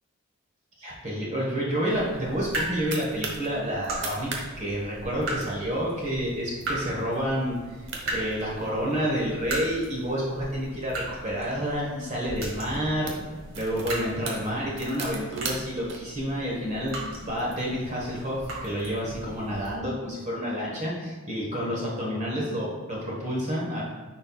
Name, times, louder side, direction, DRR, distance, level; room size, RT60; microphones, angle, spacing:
voice 1, 0.8-7.6 8.1-13.1 13.5-23.8, equal, 35° right, -4 dB, 1.3 m, -29 dB
sound 1, 1.9-19.8, right 1 dB, 80° right, 1.8 m, -38 dB
sound 2, 2.3-3.5 3.9-4.5 4.7-4.8 5.2-5.5 6.1-6.3 6.8-6.9 7.6-7.7 7.9-9.1 9.7-11.5 12.3-12.5 12.8-16.0, right 4 dB, 65° right, 1.0 m, -38 dB
9.9 x 4.2 x 2.3 m, 1.3 s
head